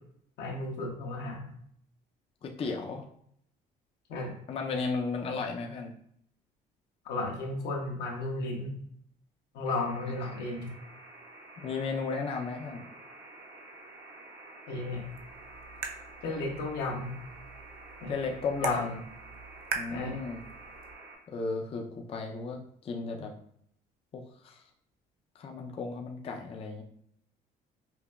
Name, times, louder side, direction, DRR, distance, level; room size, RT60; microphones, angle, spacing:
voice 1, 0.4-1.5 4.1-4.3 7.0-8.8 9.5-10.7 14.7-15.0 16.2-17.2 18.0-18.1 18.6-18.8 19.9-20.2, left 2 dB, 80° left, 0 dB, 1.0 m, -34 dB
voice 2, 2.4-3.1 4.5-5.9 11.6-12.8 18.1-19.0 19.7-20.4 21.3-23.3 24.1-24.6 25.4-26.8, left 4 dB, 35° left, 2 dB, 0.4 m, -34 dB
sound 1, 9.7-21.2, right 2 dB, 80° right, 1.0 m, -50 dB
sound 2, 14.9-20.9, right 5 dB, 60° right, 0.6 m, -42 dB
5.6 x 2.1 x 2.2 m, 0.67 s
cardioid pair, 110°, 17 cm